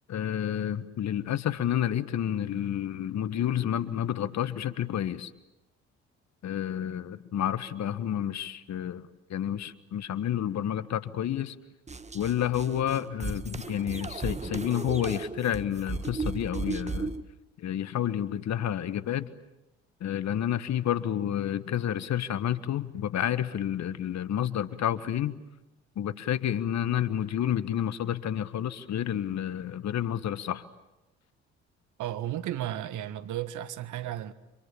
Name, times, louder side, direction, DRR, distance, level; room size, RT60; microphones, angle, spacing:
voice 1, 0.1-5.3 6.4-9.0 9.3-11.5 12.1-17.1 17.6-19.3 20.0-25.4 25.9-30.6, left 10 dB, 55° left, 1.5 m, -30 dB
sound 1, 11.9-17.2, right 3 dB, 20° right, 1.6 m, -35 dB
voice 2, 32.0-34.3, right 12 dB, 65° right, 1.5 m, -34 dB
30.0 x 26.5 x 7.2 m
hypercardioid pair, 55°, 33 cm